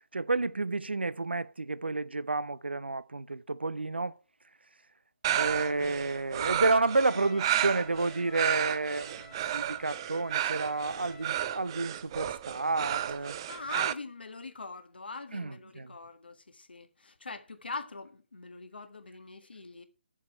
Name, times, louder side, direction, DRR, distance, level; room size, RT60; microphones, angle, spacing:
voice 1, 0.1-4.2 5.3-13.4 15.3-15.9, right 3 dB, 75° right, 0.6 m, -30 dB
sound 1, 5.2-13.9, right 12 dB, 25° right, 0.5 m, -32 dB
Trumpet, 6.8-11.6, left 4 dB, 10° left, 1.2 m, -53 dB
voice 2, 13.5-19.8, left 3 dB, 65° left, 1.5 m, -43 dB
10.5 x 7.4 x 4.4 m
figure-of-eight pair, 145°, 6 cm